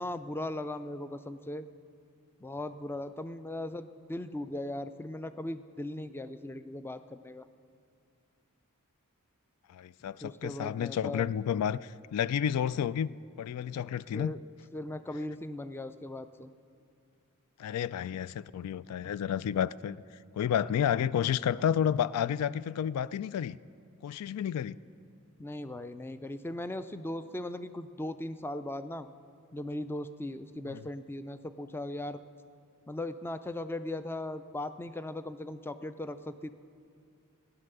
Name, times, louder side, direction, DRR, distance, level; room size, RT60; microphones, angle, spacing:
voice 1, 0.0-1.7 2.4-7.5 10.2-11.3 14.1-14.4 14.7-16.5 25.4-29.1 29.5-32.2 32.9-36.5, left 1 dB, 10° left, 12 dB, 0.3 m, -38 dB
voice 2, 9.7-14.3 17.6-20.0 20.3-23.6 24.0-24.8 30.7-30.8, left 9 dB, 90° left, 17 dB, 0.3 m, -31 dB
16.0 x 10.5 x 6.7 m, 2.4 s
head